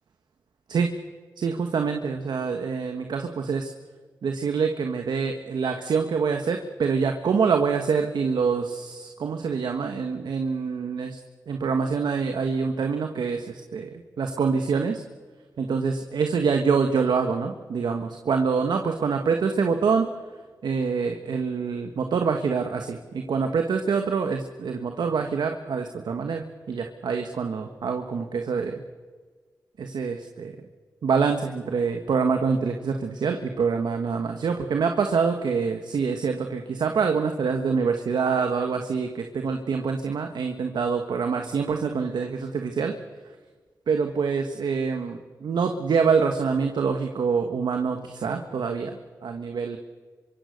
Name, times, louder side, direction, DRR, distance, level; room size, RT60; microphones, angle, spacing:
voice 1, 1.4-3.7 4.2-11.2 11.5-15.0 15.6-20.1 20.6-28.8 29.8-30.7 31.0-42.9 43.9-49.0 49.2-49.8, right 5 dB, 90° right, 5 dB, 1.5 m, -25 dB
26.5 x 24.0 x 6.6 m, 1.5 s
cardioid pair, 40°, 7 cm